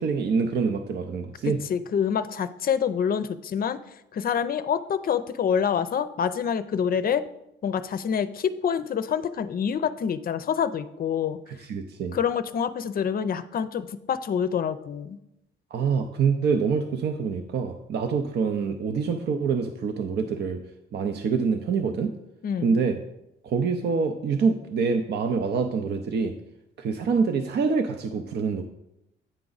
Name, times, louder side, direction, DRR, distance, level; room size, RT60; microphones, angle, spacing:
voice 1, 0.0-1.6 11.7-12.2 15.7-20.6 20.9-22.1 22.6-23.0 23.4-26.3 26.8-28.6, right 5 dB, 60° right, 5 dB, 0.6 m, -25 dB
voice 2, 1.4-3.8 4.1-7.2 7.6-11.4 12.1-15.2 22.4-22.8, left 7 dB, 50° left, 13 dB, 0.5 m, -26 dB
8.9 x 4.8 x 4.0 m, 0.85 s
cardioid pair, 90°, 20 cm